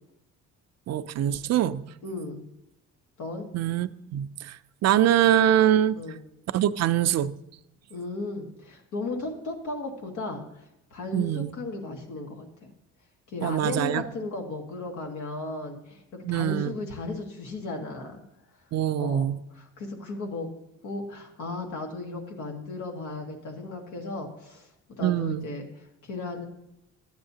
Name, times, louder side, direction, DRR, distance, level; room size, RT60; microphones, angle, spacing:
voice 1, 0.9-1.8 3.5-6.0 6.5-7.4 11.1-11.5 13.4-14.0 16.2-16.7 18.7-19.4 25.0-25.5, right 11 dB, 60° right, 0.4 m, -24 dB
voice 2, 2.0-2.4 3.2-3.5 5.9-6.2 7.9-10.6 10.9-12.7 13.3-18.2 19.0-20.5 20.8-24.7 25.0-26.5, left 2 dB, 85° left, 1.6 m, -35 dB
12.0 x 8.8 x 2.8 m
cardioid pair, 90°, 30 cm